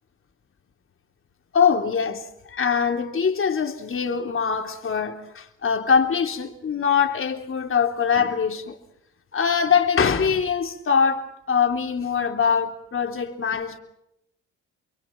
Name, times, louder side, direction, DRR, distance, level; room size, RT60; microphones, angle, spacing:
voice 1, 1.5-8.8 9.3-13.8, left 6 dB, 45° left, 3.6 m, -23 dB
28.5 x 23.0 x 6.0 m
cardioid pair, 90°, 30 cm